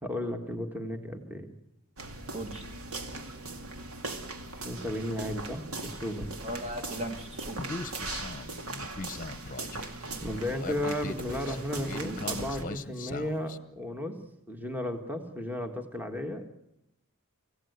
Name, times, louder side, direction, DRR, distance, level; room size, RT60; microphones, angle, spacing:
voice 1, 0.0-1.5 4.6-6.3 10.2-14.2 14.5-16.5, equal, 10° right, 5 dB, 1.6 m, -34 dB
sound 1, 2.0-12.6, right 3 dB, 90° right, 2.4 m, -39 dB
voice 2, 2.3-2.7 6.4-7.6, right 1 dB, 30° right, 6 dB, 1.7 m, -37 dB
Human voice, 7.6-13.6, left 3 dB, 40° left, 0.9 m, -40 dB
25.5 x 16.5 x 8.0 m, 0.87 s
head